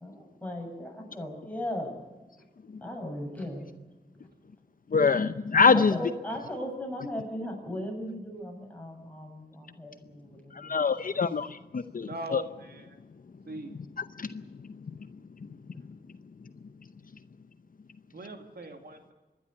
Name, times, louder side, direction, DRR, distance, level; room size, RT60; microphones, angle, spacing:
voice 1, 0.0-1.9 2.8-3.7 5.7-10.7, left 1 dB, 10° left, 0 dB, 7.8 m, -37 dB
voice 2, 4.9-6.0 10.5-12.4 14.0-14.4, left 5 dB, 55° left, 11 dB, 0.7 m, -24 dB
voice 3, 12.0-13.0 13.5-13.7 18.1-19.1, right 2 dB, 70° right, 5 dB, 2.5 m, -41 dB
26.5 x 11.5 x 9.7 m, 1.1 s
wide cardioid pair, 80°, 17 cm